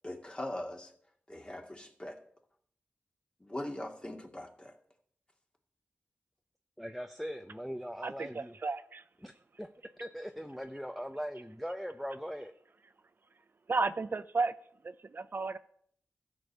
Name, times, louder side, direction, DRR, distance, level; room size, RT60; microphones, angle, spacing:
voice 1, 0.0-0.9 1.3-2.2 3.4-4.8, left 1 dB, 25° left, 2.2 m, -41 dB
voice 2, 6.8-8.6 9.2-9.3 9.6-9.7 10.0-12.5, equal, ahead, 0.8 m, -40 dB
voice 3, 8.0-9.0 13.7-14.5 14.8-15.6, right 3 dB, 50° right, 0.6 m, -33 dB
13.0 x 5.3 x 8.5 m
cardioid pair, 50°, 4 cm